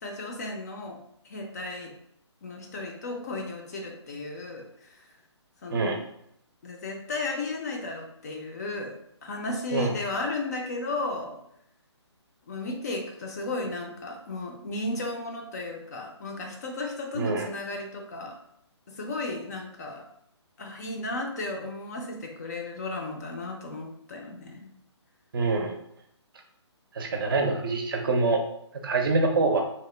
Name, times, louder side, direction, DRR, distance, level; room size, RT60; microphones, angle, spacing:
voice 1, 0.0-1.9 2.4-5.1 5.6-6.0 6.6-11.4 12.5-18.4 18.9-20.0 20.6-24.7, left 2 dB, 35° left, 2 dB, 0.4 m, -34 dB
voice 2, 17.1-17.5 25.3-25.8 26.9-28.4 28.7-29.6, right 3 dB, 50° right, 3 dB, 0.5 m, -25 dB
2.9 x 2.0 x 3.1 m, 0.73 s
hypercardioid pair, 155°, 15 cm